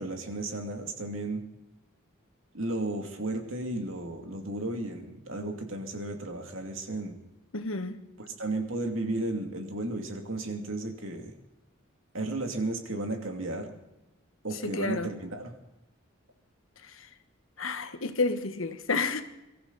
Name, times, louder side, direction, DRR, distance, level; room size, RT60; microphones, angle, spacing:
voice 1, 0.0-1.4 2.5-7.2 8.2-11.3 12.1-13.7 14.4-15.5, right 2 dB, 75° right, 2.6 m, -34 dB
voice 2, 7.5-8.0 14.6-15.1 16.9-17.1 17.6-19.2, left 3 dB, 80° left, 1.3 m, -30 dB
23.0 x 14.0 x 4.1 m
head